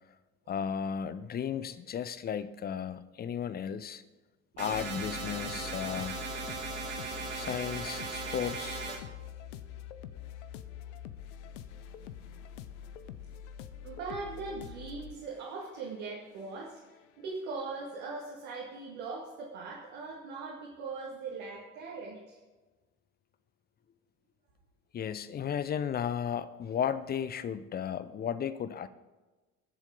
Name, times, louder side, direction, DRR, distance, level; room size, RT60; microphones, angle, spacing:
voice 1, 0.5-4.0 4.6-6.1 7.3-8.9 24.9-28.9, left 8 dB, 25° left, 15 dB, 0.6 m, -34 dB
sound 1, 4.6-9.0, right 4 dB, 40° right, 2.9 m, -38 dB
sound 2, 4.7-17.5, left 11 dB, 65° left, 0.7 m, -46 dB
voice 2, 13.8-16.8 17.2-22.4, right 4 dB, 60° right, -4 dB, 2.2 m, -40 dB
20.0 x 7.3 x 3.9 m, 1.2 s
figure-of-eight pair, 65°, 39 cm